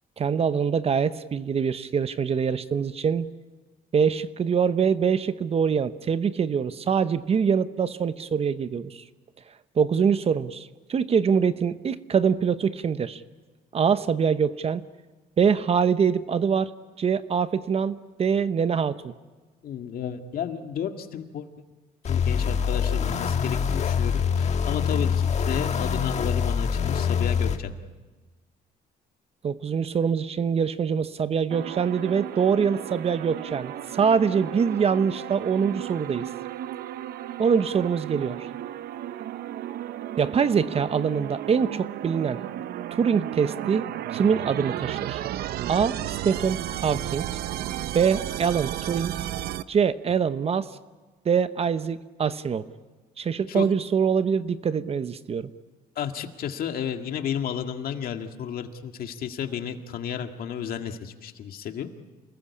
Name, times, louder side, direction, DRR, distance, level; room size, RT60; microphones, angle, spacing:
voice 1, 0.2-3.3 3.9-9.0 9.8-13.2 13.7-14.8 15.4-16.7 17.0-19.1 29.4-36.2 37.4-38.5 40.2-42.4 42.9-43.9 44.1-45.2 45.7-47.3 47.9-49.2 49.7-50.7 51.2-52.6 53.2-55.5, right 6 dB, 35° right, 13 dB, 0.9 m, -24 dB
voice 2, 19.6-21.5 22.1-27.7 53.5-53.7 56.0-61.9, left 8 dB, 60° left, 6 dB, 2.0 m, -32 dB
sound 1, 22.0-27.6, left 7 dB, 40° left, 1.5 m, -25 dB
sound 2, 31.5-49.6, right 12 dB, 65° right, 0.8 m, -34 dB
28.0 x 20.0 x 8.5 m, 1.3 s
cardioid pair, 110°, 17 cm